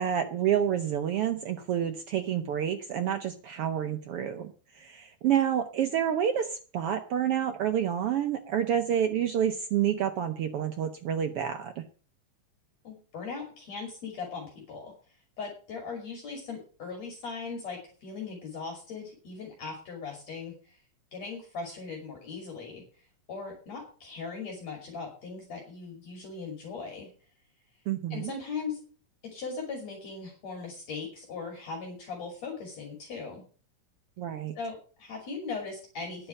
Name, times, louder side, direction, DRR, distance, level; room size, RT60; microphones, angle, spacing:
voice 1, 0.0-11.8 27.9-28.3 34.2-34.5, right 9 dB, 80° right, 7 dB, 1.3 m, -28 dB
voice 2, 12.8-14.9 15.4-20.8 21.1-22.8 23.3-27.1 28.1-28.8 29.2-33.4 34.6-36.3, left 4 dB, 55° left, 1 dB, 3.9 m, -39 dB
10.0 x 6.8 x 8.7 m, 0.40 s
omnidirectional pair, 3.6 m